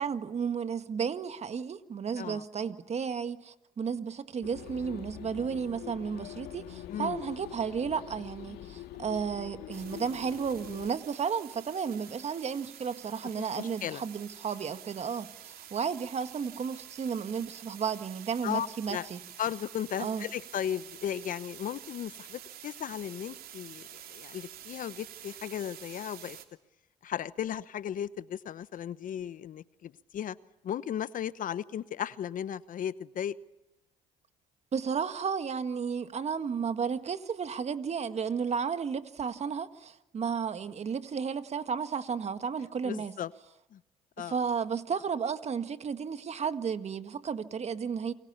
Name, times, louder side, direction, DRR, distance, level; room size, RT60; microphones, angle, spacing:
voice 1, 0.0-19.2 20.0-20.3 34.7-43.1 44.2-48.1, right 6 dB, 40° right, 1.7 m, -33 dB
sound 1, 4.4-10.9, left 12 dB, 75° left, 2.1 m, -44 dB
sound 2, 9.7-26.4, right 10 dB, 65° right, 3.0 m, -49 dB
voice 2, 13.4-14.0 18.4-19.1 19.4-26.4 27.0-30.4 30.6-33.3 42.8-43.3 43.7-43.8 44.2-44.4, left 9 dB, 55° left, 1.0 m, -36 dB
29.0 x 23.5 x 6.9 m
supercardioid pair, 80°, 16 cm